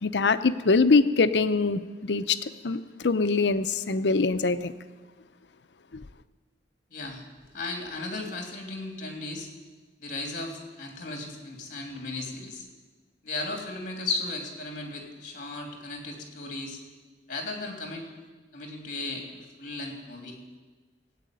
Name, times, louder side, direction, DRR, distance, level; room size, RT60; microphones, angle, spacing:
voice 1, 0.0-2.4 2.6-4.7 5.9-6.0, left 4 dB, 75° left, 12 dB, 0.7 m, -23 dB
voice 2, 6.9-7.2 7.5-9.5 10.0-12.7 13.2-16.8 17.3-18.2 18.5-20.4, left 2 dB, 50° left, 2 dB, 3.1 m, -36 dB
17.0 x 8.4 x 9.3 m, 1.3 s
head